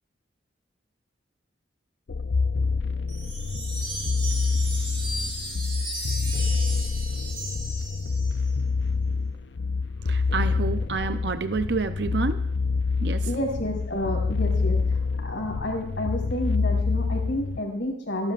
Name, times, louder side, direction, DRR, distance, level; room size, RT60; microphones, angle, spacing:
sound 1, 2.1-17.6, left 4 dB, 65° left, 0.5 m, -27 dB
Wind chime, 3.1-8.5, right 2 dB, 30° right, 6.5 m, -35 dB
voice 1, 10.1-12.4 13.0-13.3, right 4 dB, 65° right, 9 dB, 0.7 m, -28 dB
voice 2, 13.2-18.3, left 1 dB, 90° left, -1 dB, 4.8 m, -30 dB
26.5 x 12.5 x 2.5 m, 0.68 s
head